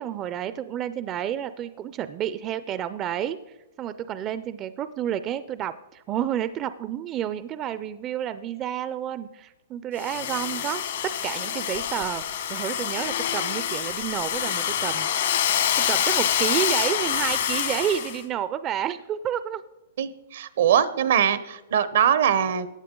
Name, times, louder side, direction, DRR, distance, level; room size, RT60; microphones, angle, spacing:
voice 1, 0.0-12.2 12.5-19.6, right 10 dB, 25° right, 13 dB, 0.4 m, -30 dB
Domestic sounds home sounds, 10.0-18.2, left 9 dB, 70° left, 1.6 m, -26 dB
voice 2, 20.0-22.7, right 9 dB, 70° right, 15 dB, 0.8 m, -22 dB
15.5 x 9.1 x 3.8 m, 1.0 s
hypercardioid pair, 140°, 0 cm